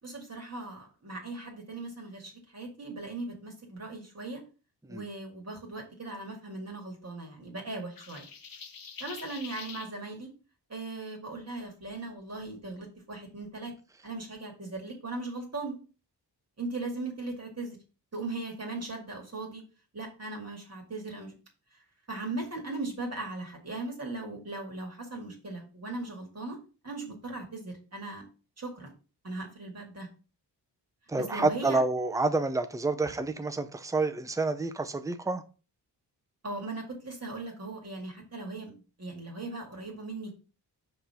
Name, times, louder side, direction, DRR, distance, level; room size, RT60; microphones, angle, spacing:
voice 1, 0.0-4.4 4.9-8.3 9.0-10.3 10.7-13.7 14.0-15.8 16.6-17.8 18.1-19.6 19.9-21.3 22.1-26.6 26.8-28.3 28.6-28.9 29.2-30.1 31.2-31.8 36.4-38.7 39.0-40.3, right 2 dB, 40° right, 2.2 m, -38 dB
sound 1, 8.0-9.9, left 5 dB, 55° left, 1.0 m, -45 dB
voice 2, 31.1-35.4, right 3 dB, 10° right, 0.6 m, -28 dB
5.8 x 3.3 x 5.7 m
cardioid pair, 70°, 41 cm